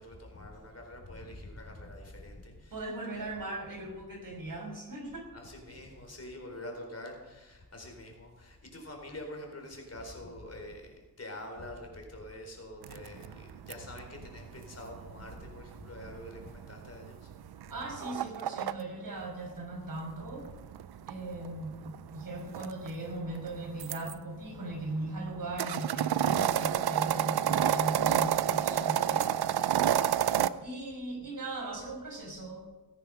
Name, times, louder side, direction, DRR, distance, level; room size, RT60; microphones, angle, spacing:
voice 1, 0.0-3.3 5.3-17.4, left 1 dB, 40° left, 2 dB, 4.3 m, -45 dB
voice 2, 2.7-5.3 17.7-20.5 21.1-21.8 22.1-29.3 30.6-32.6, right 2 dB, 60° right, 0 dB, 6.1 m, -38 dB
sound 1, 12.8-18.7 20.0-24.1 24.7-30.5, right 10 dB, 85° right, 0.6 m, -30 dB
19.0 x 9.9 x 5.8 m, 1.1 s
cardioid pair, 75°, 37 cm